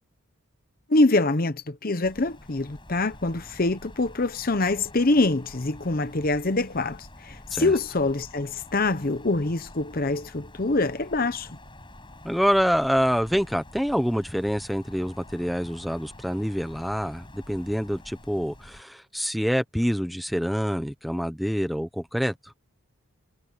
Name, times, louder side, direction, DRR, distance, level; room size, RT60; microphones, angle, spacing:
voice 1, 0.9-11.5, left 2 dB, 40° left, 0.8 m, -25 dB
Wind, 2.0-18.8, left 1 dB, 20° left, 7.7 m, -47 dB
voice 2, 12.2-22.5, equal, ahead, 1.1 m, -26 dB
head